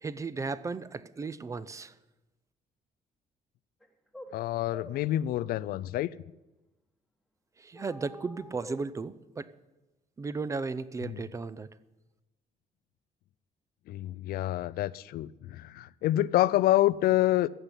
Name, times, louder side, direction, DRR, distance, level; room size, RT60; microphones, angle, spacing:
voice 1, 0.0-1.9 7.6-9.5 10.2-11.7, right 4 dB, 20° right, 17 dB, 0.4 m, -35 dB
sound 1, 3.8-3.9 4.1-4.3 4.7-5.0 7.7-8.8, equal, ahead, 1.2 m, -46 dB
voice 2, 4.3-6.1 11.0-11.2 13.9-17.5, left 14 dB, 75° left, 19 dB, 0.4 m, -27 dB
15.0 x 6.9 x 9.8 m, 1.0 s
cardioid pair, 160°, 16 cm